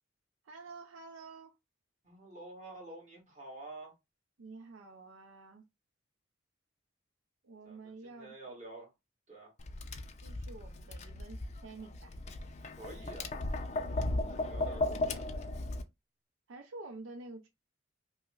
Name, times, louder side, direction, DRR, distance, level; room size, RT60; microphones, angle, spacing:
voice 1, 0.4-1.5 4.4-5.6 7.4-8.6 10.2-12.2 14.1-14.4 16.5-17.5, right 3 dB, 75° right, 0.5 m, -49 dB
voice 2, 2.0-3.9 7.6-8.9 9.3-9.5 12.8-13.3 14.3-15.2, right 2 dB, 35° right, 1.6 m, -49 dB
Tap, 9.6-15.8, left 2 dB, 35° left, 0.4 m, -36 dB
5.2 x 2.1 x 2.3 m
head